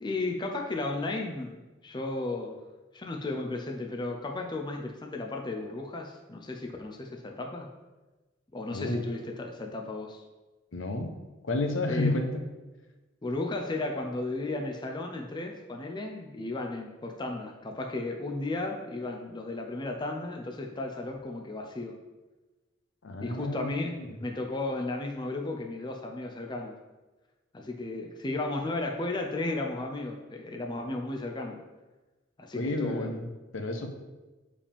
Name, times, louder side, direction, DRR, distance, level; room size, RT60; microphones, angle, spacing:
voice 1, 0.0-1.5 1.8-2.6 2.9-7.7 8.5-10.2 11.9-12.2 13.2-22.0 23.2-26.8 27.5-31.6 32.4-33.2, left 2 dB, 25° left, 2 dB, 0.5 m, -34 dB
voice 2, 8.7-9.2 10.7-11.1 11.4-12.2 23.0-24.1 32.6-33.9, left 2 dB, 75° left, 5 dB, 0.8 m, -31 dB
6.9 x 5.0 x 3.4 m, 1.2 s
head